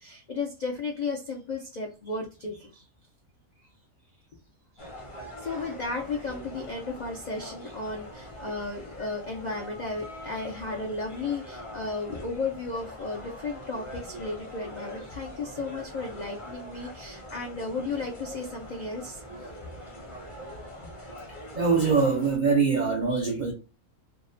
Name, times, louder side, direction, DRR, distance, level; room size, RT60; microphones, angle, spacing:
voice 1, 0.0-2.8 4.8-4.9 5.4-19.5 20.8-21.3, left 3 dB, 85° left, 0.4 m, -34 dB
sound 1, 4.8-22.4, equal, 35° left, 0.6 m, -43 dB
voice 2, 21.5-23.5, right 5 dB, 75° right, 0.4 m, -23 dB
2.7 x 2.0 x 2.5 m
omnidirectional pair, 1.5 m